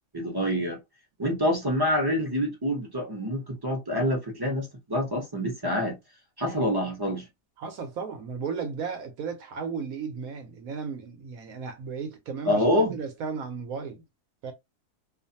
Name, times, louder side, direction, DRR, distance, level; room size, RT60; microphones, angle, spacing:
voice 1, 0.1-0.8 1.2-5.9 6.4-7.3 12.4-12.9, equal, 20° right, 0.6 m, -26 dB
voice 2, 7.6-14.0 14.4-14.5, right 5 dB, 70° right, 1.0 m, -35 dB
2.5 x 2.4 x 2.6 m
omnidirectional pair, 1.7 m